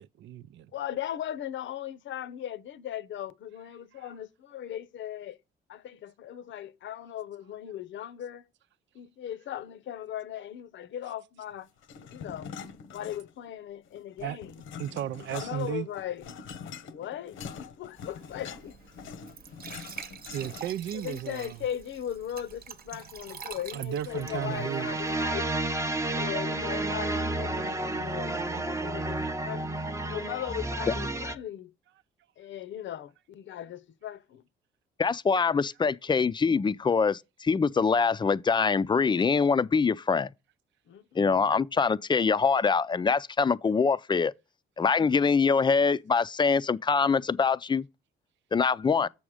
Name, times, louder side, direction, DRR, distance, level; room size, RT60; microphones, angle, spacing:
voice 1, 0.0-0.7 4.0-4.1 14.2-14.4 14.8-15.9 20.3-21.6 23.7-25.0, right 11 dB, 70° right, 0.5 m, -34 dB
voice 2, 0.7-5.4 5.7-8.4 8.9-11.7 12.1-12.5 12.9-14.6 15.3-16.2 16.9-18.7 20.9-25.5 26.1-29.2 29.4-29.7 30.1-31.7 32.4-34.4 40.9-41.6 49.0-49.1, left 11 dB, 70° left, 0.8 m, -38 dB
sound 1, 11.8-13.5 13.9-20.9, left 6 dB, 85° left, 1.1 m, -44 dB
Glass / Trickle dribble / Fill (with liquid), 18.0-25.3, right 6 dB, 50° right, 1.0 m, -46 dB
sound 2, 24.1-31.3, right 2 dB, 15° right, 0.7 m, -31 dB
voice 3, 35.0-40.3 41.2-44.3 44.8-47.8 48.5-49.1, left 5 dB, 25° left, 0.5 m, -24 dB
7.0 x 6.3 x 4.9 m
cardioid pair, 90°, 20 cm